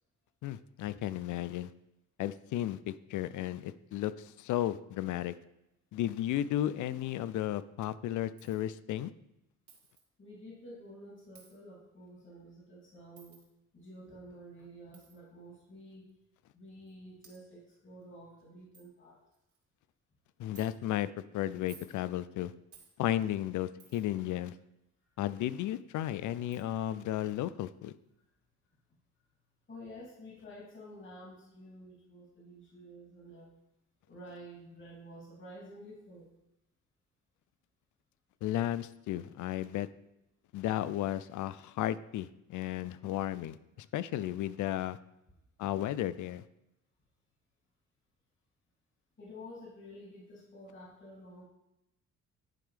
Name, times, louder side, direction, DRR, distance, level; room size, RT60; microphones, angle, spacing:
voice 1, 0.4-1.7 2.2-5.3 5.9-9.1 20.4-21.1 21.3-22.5 23.0-24.5 25.2-27.9 38.4-39.9 40.5-45.0 45.6-46.4, left 12 dB, 75° left, 16 dB, 0.5 m, -34 dB
Coin (dropping), 8.4-8.6 9.7-10.0 11.3-11.6 13.2-13.5 14.9-15.1 16.1-16.2 16.9-17.0 17.2-17.4 18.0-18.1 18.4-18.5 18.7-18.9 19.3-19.6 20.6-20.7 21.5-22.0 22.7-22.9 23.8-24.2 25.8-25.9 26.5-26.6, right 6 dB, 70° right, 2.2 m, -57 dB
voice 2, 10.2-13.4 13.7-16.1 16.5-19.2 29.7-33.5 34.1-36.3 49.2-51.4, equal, 40° left, -4 dB, 2.8 m, -50 dB
11.0 x 3.7 x 5.0 m, 0.87 s
cardioid pair, 90°, 30 cm